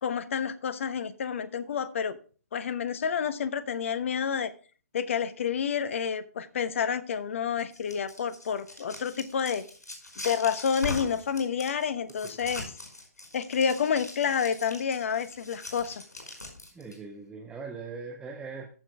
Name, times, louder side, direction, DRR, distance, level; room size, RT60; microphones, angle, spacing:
voice 1, 0.0-2.2 2.5-4.5 4.9-9.6 10.2-12.6 13.3-16.0, left 7 dB, 50° left, 13 dB, 1.1 m, -29 dB
sound 1, 7.6-17.0, left 2 dB, 80° left, 4.9 m, -41 dB
voice 2, 16.7-18.7, right 4 dB, 10° right, 2 dB, 1.1 m, -40 dB
14.5 x 6.2 x 3.4 m, 0.38 s
figure-of-eight pair, 130°, 9 cm